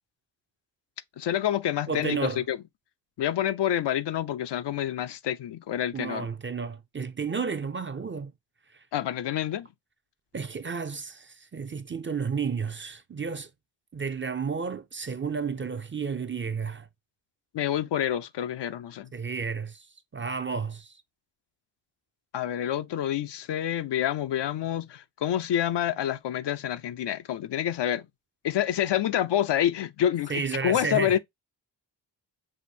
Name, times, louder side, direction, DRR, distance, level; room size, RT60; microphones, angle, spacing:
voice 1, 1.2-2.6 3.2-6.3 8.9-9.7 17.5-19.1 22.3-28.1 28.4-31.2, left 11 dB, 65° left, 0.5 m, -28 dB
voice 2, 1.9-2.4 5.9-8.3 8.7-8.8 10.3-13.5 13.9-16.9 19.1-19.9 20.1-21.0 30.3-31.2, right 5 dB, 25° right, 0.5 m, -32 dB
6.3 x 2.5 x 2.7 m
cardioid pair, 60°, 45 cm